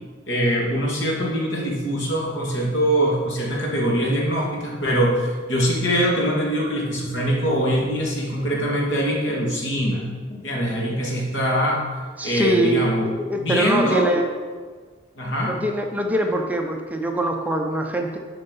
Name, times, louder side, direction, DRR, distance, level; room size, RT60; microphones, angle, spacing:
voice 1, 0.3-10.0 10.3-11.8 12.2-13.0 13.4-14.1 15.2-15.5, equal, 75° left, -2 dB, 2.2 m, -23 dB
voice 2, 12.2-14.3 15.5-18.2, right 1 dB, 10° right, 2 dB, 0.7 m, -23 dB
11.0 x 4.7 x 5.4 m, 1.5 s
head